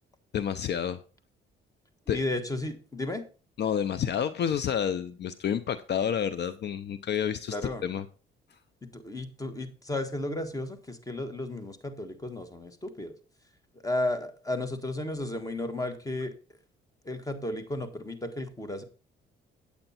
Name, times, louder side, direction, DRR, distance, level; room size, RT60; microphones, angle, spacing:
voice 1, 0.3-1.0 2.1-2.2 3.6-7.6 7.8-8.0, left 8 dB, 60° left, 13 dB, 0.7 m, -29 dB
voice 2, 2.1-3.3 7.5-7.8 8.8-13.2 13.8-16.3 17.0-18.8, left 2 dB, 15° left, 9 dB, 1.6 m, -33 dB
8.9 x 8.4 x 4.3 m, 0.35 s
cardioid pair, 90°, 20 cm